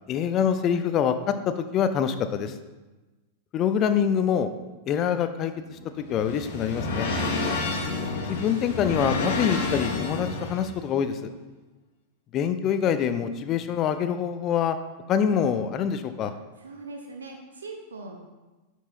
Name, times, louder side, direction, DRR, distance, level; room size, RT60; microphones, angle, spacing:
voice 1, 0.1-1.1 1.5-2.5 3.5-4.5 4.9-7.1 8.3-11.3 12.3-14.8 15.1-16.3, left 8 dB, 35° left, 10 dB, 0.6 m, -25 dB
sound 1, 5.6-10.7, left 3 dB, 55° left, 1.5 m, -29 dB
voice 2, 16.6-18.2, right 3 dB, 70° right, 2 dB, 1.0 m, -40 dB
11.0 x 4.6 x 4.0 m, 1.2 s
figure-of-eight pair, 90°, 0 cm